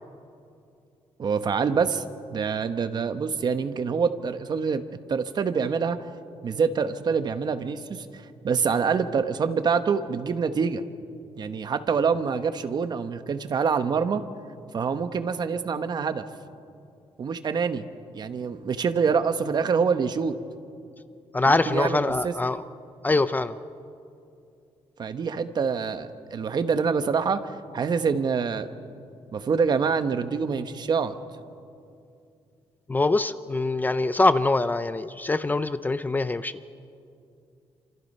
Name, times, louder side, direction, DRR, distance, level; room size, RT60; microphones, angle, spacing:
voice 1, 1.2-2.1 2.3-4.8 5.1-6.0 6.4-10.8 11.4-14.2 14.7-16.2 17.2-17.9 18.1-20.4 21.5-22.3 25.0-28.7 29.3-31.1, right 5 dB, 40° right, 10 dB, 1.1 m, -26 dB
voice 2, 21.3-22.6 23.0-23.6 32.9-36.6, left 2 dB, 15° left, 13 dB, 0.5 m, -23 dB
28.0 x 27.0 x 5.5 m, 2.5 s
cardioid pair, 150°, 11 cm